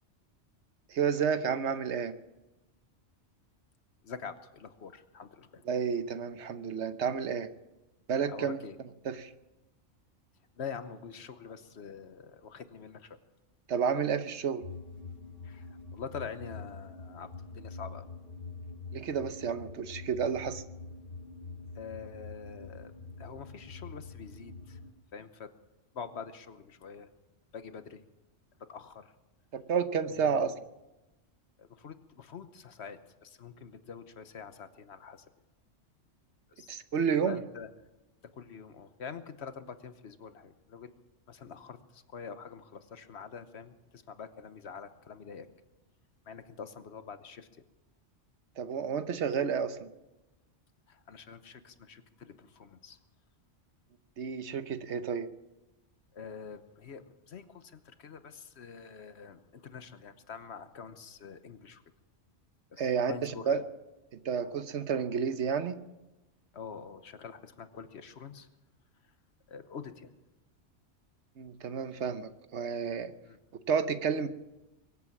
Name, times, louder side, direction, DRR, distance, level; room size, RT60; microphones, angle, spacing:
voice 1, 0.9-2.1 5.7-7.5 8.1-8.6 9.0-9.3 13.7-14.6 18.9-20.6 29.5-30.5 36.7-37.4 48.6-49.9 54.2-55.3 62.8-63.6 64.2-65.8 71.4-73.1 73.7-74.3, right 6 dB, 75° right, 11 dB, 1.1 m, -31 dB
voice 2, 4.0-5.6 8.3-8.8 10.6-13.2 15.4-17.3 17.5-18.1 21.7-22.9 23.2-24.8 25.1-25.5 25.9-27.1 27.5-28.1 28.7-29.1 30.1-30.5 31.6-35.2 36.6-36.7 37.2-37.7 38.3-40.9 41.3-45.5 46.3-47.5 50.9-53.0 56.1-61.8 62.7-63.6 66.5-68.5 69.5-70.1 73.2-73.4, left 6 dB, 65° left, 11 dB, 1.2 m, -45 dB
sound 1, 14.6-24.9, left 4 dB, 50° left, 1.5 m, -45 dB
23.5 x 8.4 x 7.3 m, 1.0 s
omnidirectional pair, 1.2 m